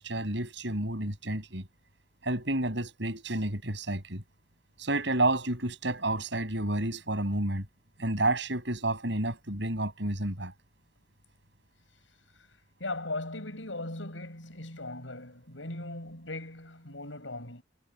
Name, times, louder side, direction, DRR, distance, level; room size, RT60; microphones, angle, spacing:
voice 1, 0.0-1.7 2.2-4.2 4.8-7.7 8.0-10.5, right 1 dB, 65° right, 7.2 m, -30 dB
voice 2, 12.8-17.6, left 2 dB, 80° left, 7.6 m, -38 dB
head